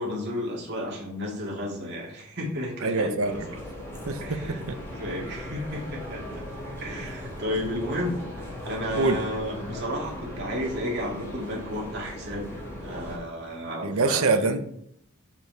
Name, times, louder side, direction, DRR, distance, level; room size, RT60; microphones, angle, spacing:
voice 1, 0.0-3.6 4.2-6.4 6.8-8.2 8.6-12.5 12.8-14.5, left 1 dB, 50° right, -2 dB, 2.1 m, -32 dB
voice 2, 2.8-3.5 4.1-4.4 4.7-4.8 8.9-9.2 13.8-14.6, right 3 dB, 70° right, 8 dB, 0.7 m, -24 dB
sound 1, 3.2-13.2, equal, 10° left, 2.3 m, -38 dB
7.3 x 4.7 x 4.5 m, 0.70 s
head